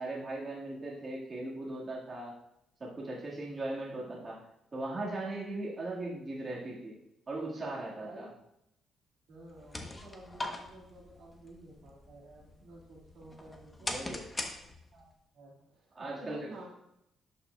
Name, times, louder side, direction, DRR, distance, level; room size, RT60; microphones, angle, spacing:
voice 1, 0.0-2.4 2.8-4.5 4.7-7.0 7.3-8.3 13.8-14.3 15.9-16.5, right 2 dB, 35° right, -4 dB, 1.7 m, -38 dB
voice 2, 9.3-14.1 14.4-14.5 14.9-15.1 15.3-16.7, right 2 dB, 70° right, -3 dB, 1.9 m, -51 dB
sound 1, 9.4-15.1, left 2 dB, 20° left, 0.9 m, -42 dB
10.5 x 5.7 x 2.3 m, 0.81 s
cardioid pair, 90°, 0 cm